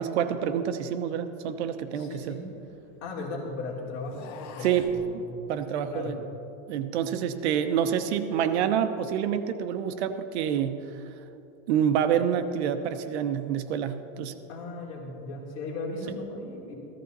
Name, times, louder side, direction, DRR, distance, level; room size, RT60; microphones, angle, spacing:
voice 1, 0.0-2.4 4.6-5.2 5.5-6.2 6.7-10.9 11.7-14.3, right 8 dB, 75° right, 9 dB, 0.9 m, -27 dB
sound 1, 1.8-3.2 4.0-5.0, left 6 dB, 70° left, 1.5 m, -46 dB
voice 2, 1.9-2.5 3.0-5.3 5.9-6.2 14.5-16.7, left 2 dB, 50° left, -3 dB, 3.2 m, -37 dB
15.0 x 14.5 x 4.1 m, 2.9 s
supercardioid pair, 165°, 34 cm